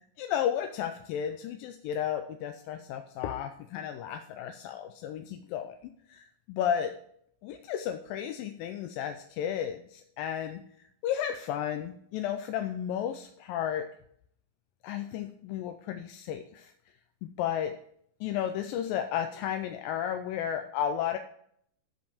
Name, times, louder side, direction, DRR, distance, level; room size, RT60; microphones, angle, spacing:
voice 1, 0.2-5.7 6.1-6.9 7.4-10.6 11.0-13.9 14.8-16.7 17.4-17.7 18.2-21.2, left 9 dB, 80° left, 7 dB, 2.2 m, -33 dB
13.0 x 5.2 x 4.9 m, 0.67 s
omnidirectional pair, 4.4 m